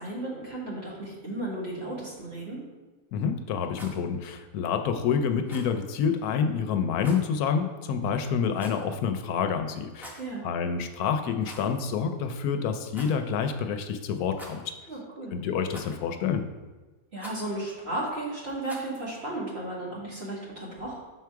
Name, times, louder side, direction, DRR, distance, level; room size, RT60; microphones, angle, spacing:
voice 1, 0.0-2.6 10.2-10.4 14.9-15.3 17.1-21.0, right 2 dB, 45° right, -5 dB, 1.9 m, -34 dB
voice 2, 3.1-10.2 10.4-14.7 15.3-16.4, left 6 dB, 80° left, 7 dB, 1.1 m, -28 dB
Rattle, 3.6-4.0 5.4-5.7 7.0-7.3 8.5-8.9 9.9-10.3 11.4-11.8 12.1-12.2 12.9-13.2 14.3-14.8 15.7-16.1 17.2-17.5 18.6-19.0, right 1 dB, ahead, 0.7 m, -45 dB
6.2 x 4.7 x 4.6 m, 1.2 s
omnidirectional pair, 1.6 m